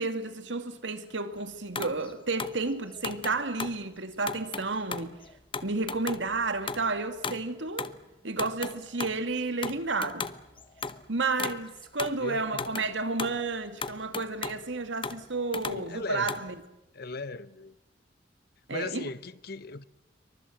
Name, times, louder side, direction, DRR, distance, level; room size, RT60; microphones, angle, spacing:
voice 1, 0.0-5.1 5.6-7.9 8.2-10.3 11.1-16.6 18.7-19.1, right 3 dB, 75° right, 2.4 m, -31 dB
sound 1, 1.8-3.8 4.2-7.5 7.8-8.0 8.3-9.2 9.6-11.0 11.4-12.2 12.5-13.4 13.8-14.6 15.0-16.5, left 4 dB, 30° left, 0.9 m, -37 dB
voice 2, 12.2-12.7 15.6-16.3 16.9-17.7 18.7-19.8, left 3 dB, 55° left, 1.0 m, -37 dB
28.5 x 24.0 x 7.9 m
head